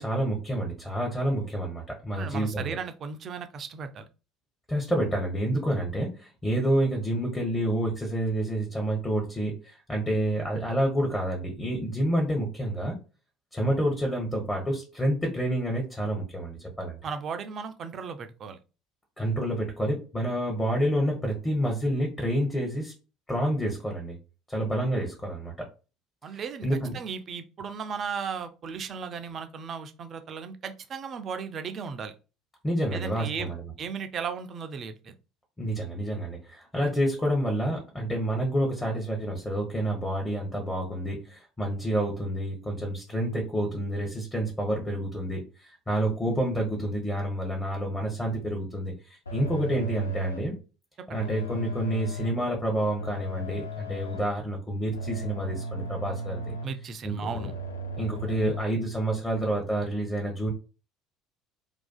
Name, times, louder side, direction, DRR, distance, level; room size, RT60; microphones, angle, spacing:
voice 1, 0.0-2.8 4.7-13.0 13.5-17.0 19.2-22.9 23.3-24.2 24.5-25.5 26.3-27.0 32.6-33.6 35.6-50.5 51.1-56.4 57.0-57.2 57.9-60.5, right 1 dB, 15° left, 0 dB, 0.7 m, -28 dB
voice 2, 2.1-4.1 17.0-18.6 26.2-26.7 26.9-32.1 32.9-33.5 33.8-35.1 51.1-51.3 56.6-57.5, right 6 dB, 40° right, 8 dB, 0.3 m, -36 dB
sound 1, 49.3-50.6 51.1-52.5 53.0-54.4 54.9-56.8 57.3-58.7, right 1 dB, 85° left, 0.3 m, -36 dB
2.4 x 2.3 x 2.2 m, 0.32 s
figure-of-eight pair, 60°, 0 cm